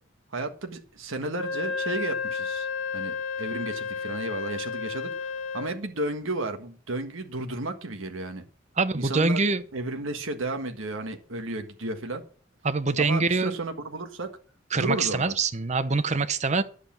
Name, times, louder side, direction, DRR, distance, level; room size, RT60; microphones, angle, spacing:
voice 1, 0.3-2.7 2.9-8.4 8.9-9.4 9.7-12.2 13.0-14.3 14.7-15.3, right 2 dB, 85° right, 1.6 m, -33 dB
Wind instrument woodwind instrument, 1.3-5.8, left 5 dB, 90° left, 1.9 m, -32 dB
voice 2, 8.8-9.6 12.6-13.5 14.7-16.6, right 3 dB, 35° right, 0.7 m, -24 dB
11.0 x 8.3 x 7.3 m
head